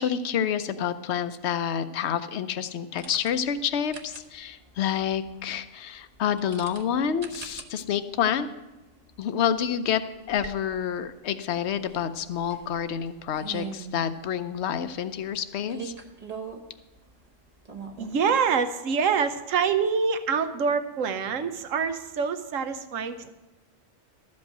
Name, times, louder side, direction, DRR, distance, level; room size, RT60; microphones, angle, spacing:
voice 1, 0.0-8.5 9.2-10.0 10.3-15.9, left 8 dB, 60° left, 11 dB, 0.9 m, -28 dB
sound 1, 2.9-18.2, right 5 dB, 35° right, 0.9 m, -44 dB
voice 2, 18.0-23.3, right 6 dB, 75° right, 10 dB, 1.2 m, -26 dB
13.0 x 5.4 x 8.0 m, 1.1 s
omnidirectional pair, 1.3 m